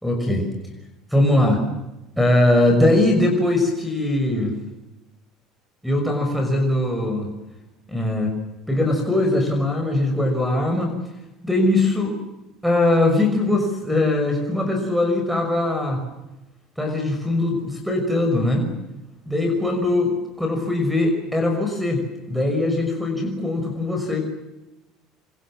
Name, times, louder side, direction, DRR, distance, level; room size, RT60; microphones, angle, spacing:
voice 1, 0.0-0.5 1.1-1.6 2.2-4.5 5.8-7.3 7.9-8.3 8.7-10.9 11.4-12.2 12.6-16.0 16.8-18.7 19.3-20.1 20.4-24.2, left 2 dB, ahead, 4 dB, 5.9 m, -21 dB
27.5 x 26.5 x 7.5 m, 0.99 s
cardioid pair, 140°, 0 cm